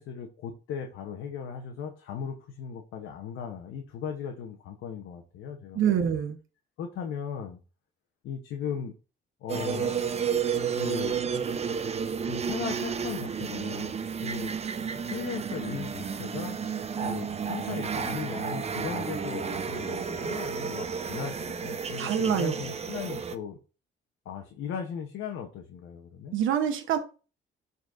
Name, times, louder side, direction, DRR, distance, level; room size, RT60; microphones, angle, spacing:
voice 1, 0.0-5.8 6.1-6.2 6.8-7.6 8.2-8.9 9.4-10.0 10.8-11.2 12.2-14.5 14.8-16.6 17.0-23.6 24.2-26.4, left 7 dB, 85° left, 3 dB, 1.0 m, -37 dB
voice 2, 5.7-6.4 22.0-22.6 26.3-27.0, right 8 dB, 85° right, 5 dB, 1.0 m, -26 dB
sound 1, 9.5-23.3, right 6 dB, 30° right, 0.6 m, -32 dB
12.0 x 4.1 x 2.6 m, 0.34 s
cardioid pair, 90°, 20 cm